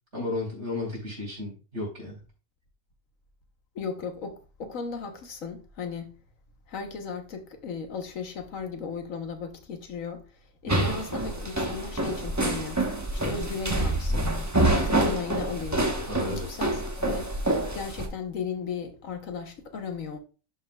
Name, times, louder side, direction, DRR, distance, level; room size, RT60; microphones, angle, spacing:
voice 1, 0.1-2.2 10.7-10.9 16.1-16.5, left 2 dB, 60° right, 4.3 m, -34 dB
voice 2, 3.7-6.1 6.7-10.2 10.6-12.8 13.1-15.9 16.2-17.3 17.7-20.2, left 5 dB, 80° left, 1.5 m, -36 dB
sound 1, 10.7-18.1, right 1 dB, 15° right, 1.0 m, -27 dB
11.5 x 5.8 x 2.3 m
omnidirectional pair, 1.4 m